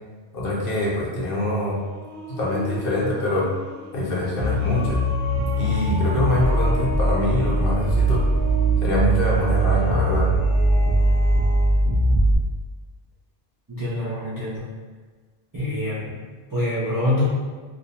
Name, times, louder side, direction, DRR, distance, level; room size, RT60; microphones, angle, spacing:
voice 1, 0.3-1.8 2.4-3.5 3.9-5.0 5.6-8.2 8.8-10.3, left 1 dB, 65° left, -5 dB, 0.8 m, -24 dB
sound 1, 1.3-11.8, right 1 dB, 90° right, 0.9 m, -35 dB
sound 2, 4.4-12.4, right 1 dB, 40° left, 0.5 m, -21 dB
voice 2, 13.7-14.7 15.5-17.2, left 1 dB, 35° right, -10 dB, 0.3 m, -26 dB
2.5 x 2.0 x 2.7 m, 1.4 s
omnidirectional pair, 1.1 m